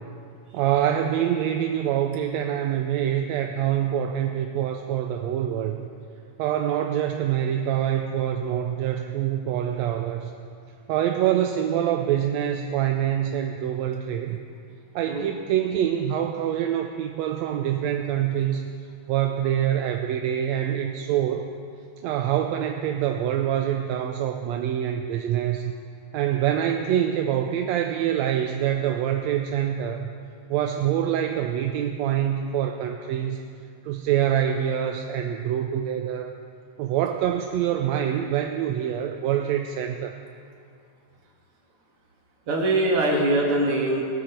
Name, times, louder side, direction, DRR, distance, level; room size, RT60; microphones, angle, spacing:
voice 1, 0.5-5.9 6.4-10.3 10.9-14.4 15.0-18.6 19.1-21.5 22.0-25.7 26.1-30.1 30.5-33.4 33.9-36.3 36.8-40.1, right 10 dB, 75° right, 5 dB, 1.8 m, -25 dB
voice 2, 42.5-44.0, right 1 dB, 50° right, -1 dB, 2.8 m, -22 dB
19.0 x 12.5 x 4.5 m, 2.3 s
omnidirectional pair, 3.3 m